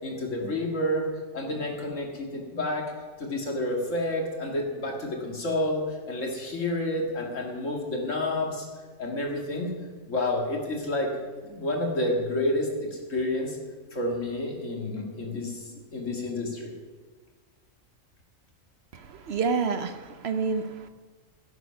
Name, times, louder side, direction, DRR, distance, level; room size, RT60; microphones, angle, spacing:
voice 1, 0.0-1.1 1.3-2.9 3.2-8.7 9.0-9.7 10.1-11.1 11.4-13.6 13.9-15.6 15.9-16.7, left 1 dB, 70° left, 0 dB, 2.5 m, -29 dB
voice 2, 18.9-20.9, right 5 dB, 60° right, 10 dB, 0.9 m, -29 dB
17.0 x 8.4 x 5.8 m, 1.5 s
omnidirectional pair, 1.4 m